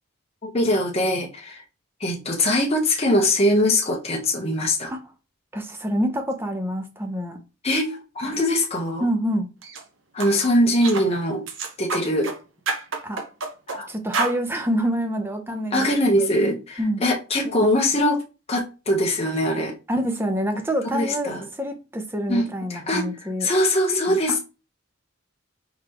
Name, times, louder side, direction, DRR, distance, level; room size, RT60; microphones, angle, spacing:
voice 1, 0.4-1.6 2.0-4.9 7.6-9.1 10.1-11.4 11.8-12.3 13.7-13.9 15.7-18.2 18.5-19.8 20.9-21.5 22.3-24.4, left 1 dB, 30° left, 0.9 m, -22 dB
voice 2, 5.5-7.4 9.0-9.5 13.0-13.2 13.9-16.3 16.8-17.0 19.9-23.5 24.1-24.2, equal, 10° right, 0.7 m, -26 dB
sound 1, 9.6-9.8 10.2-10.3 10.8-11.1 11.5-12.4 12.7-13.8 14.1-14.4, right 4 dB, 70° right, 0.9 m, -28 dB
4.4 x 4.0 x 2.9 m
head